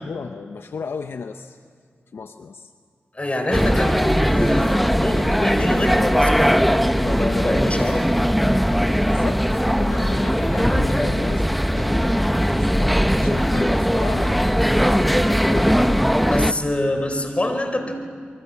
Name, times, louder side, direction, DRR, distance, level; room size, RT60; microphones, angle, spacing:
voice 1, 0.0-1.6 2.1-2.7 9.0-12.9 13.2-15.8, left 5 dB, 75° left, 8 dB, 0.8 m, -34 dB
voice 2, 3.1-8.1 16.2-18.0, left 1 dB, 30° left, 6 dB, 4.7 m, -25 dB
sound 1, 3.5-16.5, equal, ahead, 1.1 m, -19 dB
26.5 x 24.0 x 7.3 m, 2.1 s
cardioid pair, 45°, 4 cm